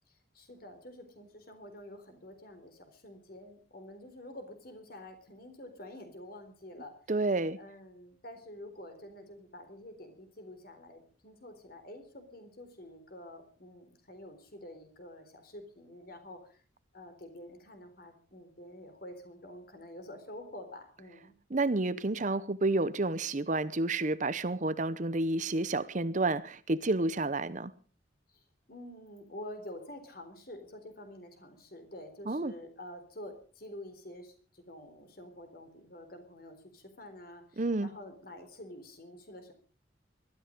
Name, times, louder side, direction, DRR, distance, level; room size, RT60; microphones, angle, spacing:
voice 1, 0.3-6.9 7.6-16.6 16.9-21.3 28.3-28.4 28.7-39.5, left 1 dB, 50° left, 3.9 m, -48 dB
voice 2, 7.1-7.6 21.5-27.7 32.3-32.5 37.6-37.9, right 2 dB, 40° right, 0.8 m, -30 dB
20.0 x 13.0 x 5.2 m
head